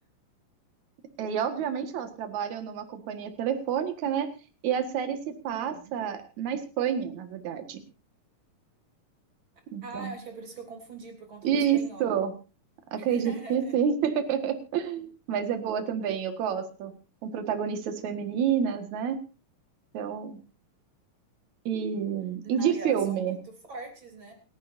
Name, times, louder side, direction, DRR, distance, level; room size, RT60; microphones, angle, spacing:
voice 1, 1.2-4.3 4.6-7.8 9.7-10.1 11.4-12.3 12.9-16.9 17.2-19.2 19.9-20.4 21.7-23.4, right 8 dB, 60° right, 8 dB, 2.9 m, -29 dB
voice 2, 5.5-5.9 9.8-12.1 12.9-13.8 22.4-24.3, right 2 dB, 35° right, 3 dB, 4.1 m, -43 dB
28.5 x 11.0 x 2.7 m, 0.32 s
omnidirectional pair, 4.1 m